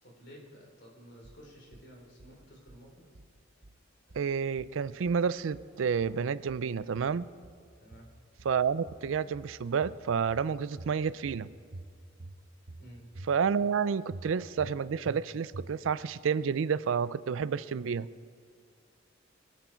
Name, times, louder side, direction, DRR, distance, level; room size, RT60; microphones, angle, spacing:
voice 1, 0.0-3.1 7.8-8.1 12.8-13.1, equal, 60° left, -1 dB, 3.5 m, -52 dB
sound 1, 1.2-1.9 2.2-2.8 3.2-3.8 4.1-4.8 5.1-5.7 6.0-6.7 7.0-7.7 7.9-8.6 8.9-9.6 9.8-10.5 10.8-11.4 11.7-12.4 12.7-13.3 13.6-13.7 14.1-14.8 15.1-15.2 15.5-16.0, right 2 dB, 55° right, 0.8 m, -48 dB
voice 2, 4.1-7.3 8.4-11.5 13.3-18.1, right 6 dB, 80° right, 17 dB, 0.4 m, -30 dB
24.5 x 8.4 x 4.5 m, 2.2 s
head